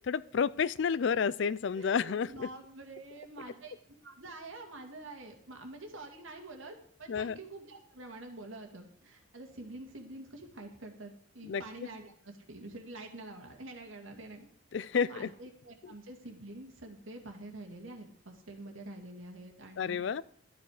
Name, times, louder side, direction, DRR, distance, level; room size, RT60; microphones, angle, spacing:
voice 1, 0.0-2.5 7.1-7.4 11.4-11.6 14.7-15.3 15.8-15.9 19.8-20.2, left 6 dB, 55° left, 20 dB, 0.4 m, -30 dB
voice 2, 1.7-14.5 14.9-20.0, right 2 dB, 70° right, 3 dB, 2.2 m, -47 dB
12.5 x 9.1 x 4.9 m, 0.62 s
head